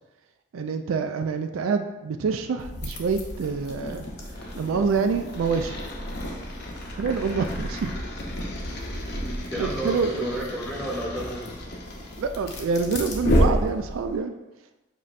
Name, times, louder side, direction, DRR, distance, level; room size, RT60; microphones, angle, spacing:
voice 1, 0.5-4.0 4.6-5.8 6.9-7.9 9.6-10.3 12.2-14.3, right 5 dB, 85° right, 7 dB, 0.3 m, -26 dB
sound 1, 2.6-14.2, equal, 55° left, 0.7 m, -30 dB
voice 2, 9.5-11.6, right 1 dB, 5° right, -5 dB, 0.8 m, -32 dB
6.9 x 2.7 x 2.5 m, 1.0 s
head